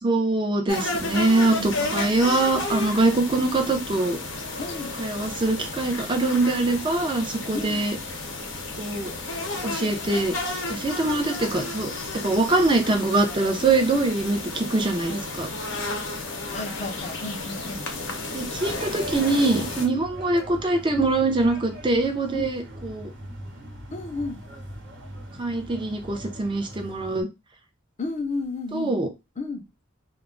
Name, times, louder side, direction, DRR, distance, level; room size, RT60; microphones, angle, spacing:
voice 1, 0.0-4.2 5.0-8.0 8.7-9.1 9.6-10.3 10.7-11.9 12.2-15.5 18.3-23.1 25.4-27.3 28.7-29.1, right 2 dB, 25° right, 0.5 m, -23 dB
sound 1, 0.7-19.9, left 3 dB, 75° left, 0.7 m, -32 dB
voice 2, 1.5-2.2 4.6-4.9 7.5-7.9 16.5-17.9 19.8-20.0 22.3-22.5 23.9-24.4 28.0-28.9 29.4-29.6, left 3 dB, 35° left, 0.5 m, -32 dB
sound 2, 18.5-27.2, equal, 65° right, 1.0 m, -40 dB
2.3 x 2.0 x 3.7 m
head